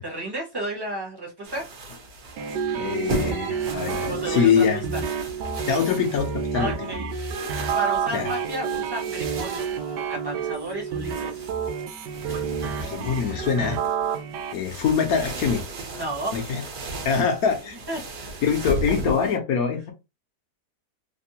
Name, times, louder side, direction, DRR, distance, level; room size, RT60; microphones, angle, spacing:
voice 1, 0.0-1.7 4.1-5.0 6.5-7.3 7.7-11.7 12.3-12.5 15.9-17.2 17.9-18.4, right 1 dB, 20° right, 0.7 m, -33 dB
sound 1, 1.4-19.4, right 2 dB, 60° right, 1.4 m, -36 dB
sound 2, 2.4-14.5, right 6 dB, 80° right, 1.2 m, -29 dB
voice 2, 2.7-4.9 5.7-6.9 8.1-8.3 12.8-13.8 14.5-15.6 16.3-16.6 17.0-17.8 18.4-19.9, left 6 dB, 65° left, 1.1 m, -24 dB
3.4 x 2.2 x 2.7 m
omnidirectional pair, 1.8 m